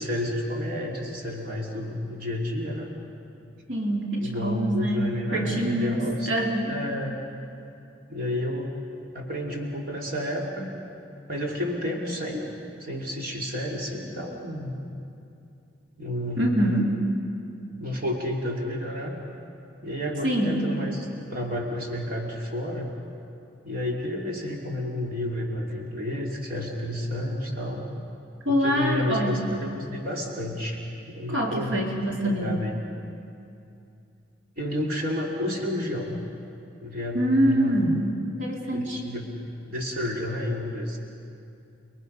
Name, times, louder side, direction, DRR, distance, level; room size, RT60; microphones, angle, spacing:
voice 1, 0.0-2.9 4.2-6.3 6.7-7.2 8.1-8.7 9.1-10.7 11.3-12.5 12.8-14.7 16.0-16.5 17.8-19.2 19.8-22.9 23.6-27.8 28.5-30.8 31.1-32.8 34.6-36.2 36.8-37.8 38.7-41.0, left 1 dB, 45° right, -1 dB, 2.7 m, -31 dB
voice 2, 3.7-6.0 6.3-6.7 16.4-17.0 20.2-20.6 28.4-29.4 31.3-32.6 37.1-38.0 38.4-39.0, equal, 70° right, -1 dB, 2.6 m, -25 dB
30.0 x 21.5 x 5.5 m, 2.6 s
head